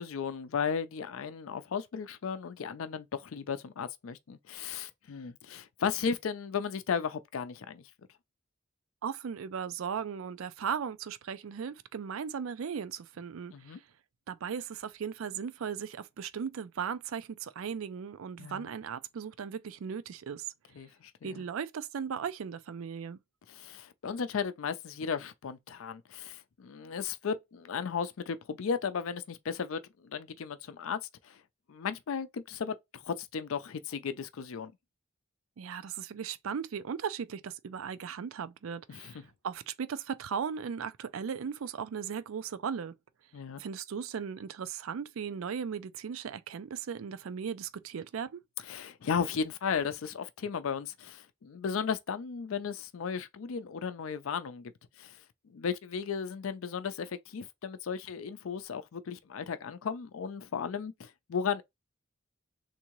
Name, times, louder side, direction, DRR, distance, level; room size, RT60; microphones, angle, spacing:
voice 1, 0.0-7.8 13.5-13.8 18.4-18.7 20.8-21.4 23.5-31.4 31.7-34.7 38.9-39.1 43.3-43.6 48.7-54.7 55.0-55.2 55.5-61.6, left 6 dB, 85° left, 0.4 m, -35 dB
voice 2, 9.0-13.8 14.3-20.4 21.2-23.2 35.6-42.9 43.6-48.4, right 7 dB, 85° right, 0.4 m, -37 dB
3.6 x 2.6 x 3.0 m
head